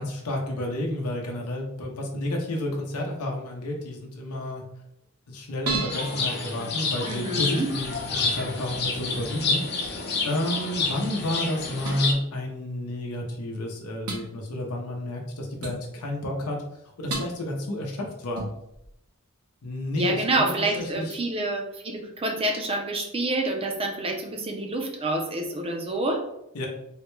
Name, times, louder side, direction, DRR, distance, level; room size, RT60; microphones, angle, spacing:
voice 1, 0.0-4.6 5.3-9.9 10.2-16.6 17.0-18.5 19.6-20.5 20.7-21.2 26.5-26.7, left 1 dB, 85° left, 0 dB, 0.7 m, -31 dB
sound 1, 5.6-7.4 11.8-12.1 13.1-13.2 14.1-14.3 15.6-15.8 17.1-17.4 18.3-18.9 20.7-21.1, right 3 dB, 70° right, 0.7 m, -34 dB
sound 2, 5.9-12.1, left 4 dB, 50° left, 0.6 m, -29 dB
voice 2, 7.0-7.7 19.9-26.2, right 2 dB, 25° right, 3 dB, 0.5 m, -27 dB
3.6 x 2.2 x 3.0 m, 0.82 s
head